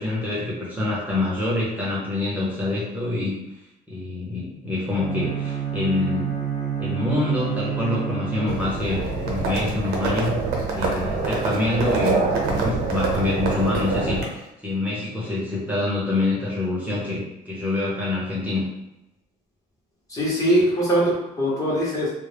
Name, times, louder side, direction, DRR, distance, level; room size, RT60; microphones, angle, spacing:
voice 1, 0.0-3.4 3.9-6.3 6.8-10.4 10.7-18.7, left 2 dB, 10° right, -6 dB, 0.7 m, -26 dB
Bowed string instrument, 4.9-9.1, right 8 dB, 90° left, 1.0 m, -29 dB
Livestock farm animals working animals, 8.5-14.2, right 3 dB, 75° right, 0.7 m, -25 dB
voice 2, 20.1-22.1, right 1 dB, 20° left, -6 dB, 1.0 m, -21 dB
2.3 x 2.1 x 3.3 m, 0.89 s
cardioid pair, 110°, 17 cm